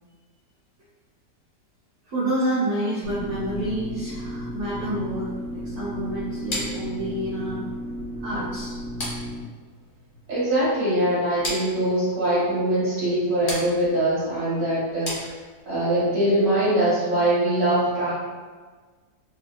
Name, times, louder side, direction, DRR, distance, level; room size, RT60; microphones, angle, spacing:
voice 1, 2.1-7.6 8.2-8.7, right 1 dB, 65° right, -11 dB, 1.4 m, -28 dB
sound 1, 3.0-9.4, equal, 85° right, 1.4 m, -34 dB
sound 2, 6.5-15.8, left 1 dB, 70° left, 1.5 m, -37 dB
voice 2, 10.3-15.3 15.6-18.1, right 1 dB, 35° right, -12 dB, 1.7 m, -22 dB
3.3 x 2.7 x 2.2 m, 1.4 s
omnidirectional pair, 1.9 m